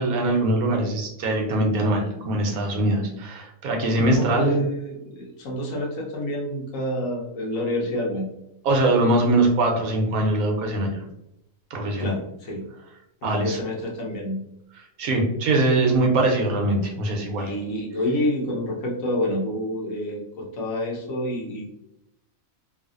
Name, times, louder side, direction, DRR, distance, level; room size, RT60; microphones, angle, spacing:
voice 1, 0.0-4.6 8.6-11.0 11.7-12.2 13.2-13.6 15.0-17.5, right 2 dB, 85° right, 1 dB, 1.2 m, -22 dB
voice 2, 3.8-8.3 12.0-12.6 13.2-14.4 17.4-21.7, left 1 dB, 75° left, -1 dB, 1.2 m, -28 dB
3.3 x 2.5 x 2.4 m, 0.84 s
omnidirectional pair, 1.5 m